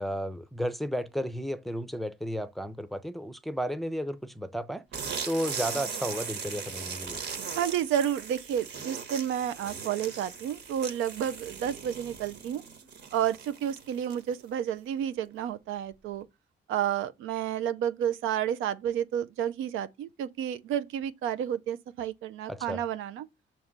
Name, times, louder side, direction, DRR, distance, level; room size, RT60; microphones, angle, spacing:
voice 1, 0.0-4.9 5.2-7.2 22.5-22.8, equal, ahead, 0.6 m, -33 dB
sound 1, 4.9-14.4, right 6 dB, 60° right, 1.4 m, -39 dB
voice 2, 7.6-12.6 13.1-16.3 16.7-23.3, right 10 dB, 85° right, 0.5 m, -31 dB
5.9 x 3.1 x 5.1 m
cardioid pair, 90°, 20 cm